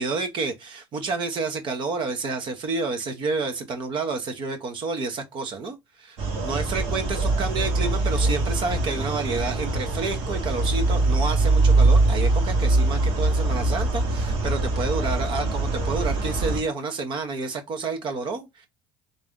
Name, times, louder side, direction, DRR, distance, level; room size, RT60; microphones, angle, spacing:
voice 1, 0.0-6.2 6.4-18.7, right 4 dB, 45° right, 0.8 m, -29 dB
sound 1, 6.2-16.6, right 2 dB, 65° right, 1.3 m, -23 dB
3.3 x 2.6 x 3.5 m
hypercardioid pair, 75°, 11 cm